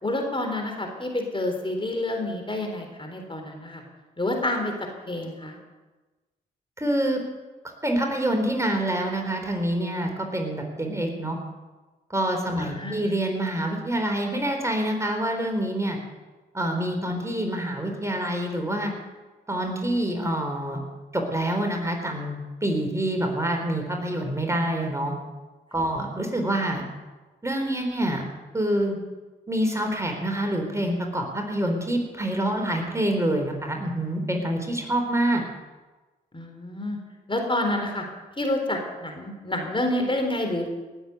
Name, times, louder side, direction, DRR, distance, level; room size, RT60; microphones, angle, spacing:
voice 1, 0.0-3.8 4.2-4.7 5.1-5.6 12.6-13.0 36.3-37.0 37.3-38.0 38.4-40.7, left 1 dB, 25° left, 3 dB, 3.9 m, -28 dB
voice 2, 6.8-7.2 7.8-11.4 12.1-16.0 16.5-18.9 19.5-20.8 21.1-25.1 25.7-26.9 27.4-28.2 28.5-29.0 29.5-35.4, right 1 dB, 15° right, 2 dB, 4.0 m, -26 dB
18.5 x 8.1 x 8.1 m, 1.2 s
hypercardioid pair, 45°, 21 cm